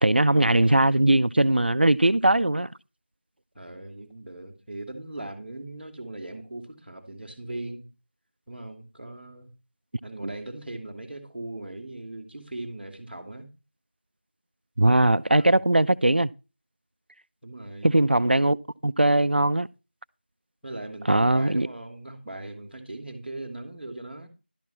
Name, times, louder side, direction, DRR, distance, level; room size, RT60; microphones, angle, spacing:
voice 1, 0.0-2.7 14.8-16.3 17.8-18.6 18.8-19.7 21.1-21.7, right 1 dB, 70° right, 0.5 m, -20 dB
voice 2, 3.5-7.9 8.5-9.5 10.0-13.5 15.4-15.7 17.4-17.9 20.6-24.3, right 2 dB, ahead, 1.1 m, -39 dB
12.0 x 4.6 x 7.2 m
figure-of-eight pair, 175°, 6 cm